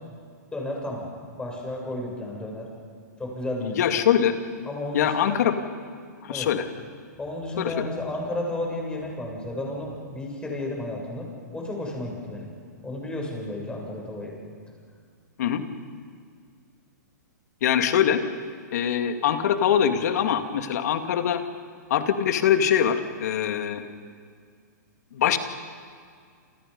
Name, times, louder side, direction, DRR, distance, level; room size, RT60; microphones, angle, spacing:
voice 1, 0.5-1.1 1.4-2.7 3.2-3.9 4.6-5.4 6.3-6.5 7.2-11.3 11.5-12.5 12.8-14.3, left 1 dB, 10° left, -1 dB, 7.6 m, -32 dB
voice 2, 3.6-4.4 4.9-5.6 6.2-6.7 7.6-7.9 15.4-15.6 17.6-18.2 18.7-21.4 21.9-23.8 25.1-25.4, left 9 dB, 60° left, 7 dB, 2.3 m, -23 dB
28.5 x 27.5 x 5.5 m, 2.1 s
hypercardioid pair, 125°, 10 cm